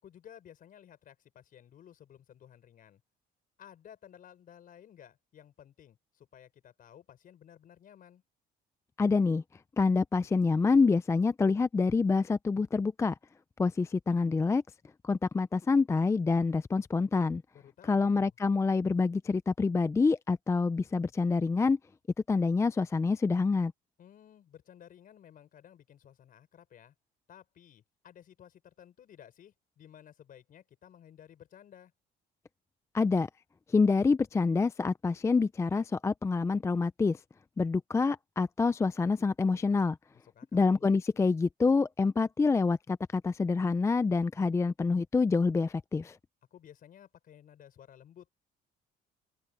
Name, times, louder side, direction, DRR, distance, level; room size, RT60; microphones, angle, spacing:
voice 1, 0.0-3.0 3.6-8.2 17.5-18.3 24.0-26.9 27.3-31.9 40.2-40.9 46.5-48.3, left 10 dB, 55° left, 5.5 m, -55 dB
voice 2, 9.0-9.4 9.8-13.1 13.6-14.6 15.0-17.4 17.8-21.8 22.3-23.7 32.9-33.3 33.7-37.2 37.6-40.0 40.5-46.2, left 4 dB, 15° left, 0.4 m, -27 dB
open air
cardioid pair, 110°, 17 cm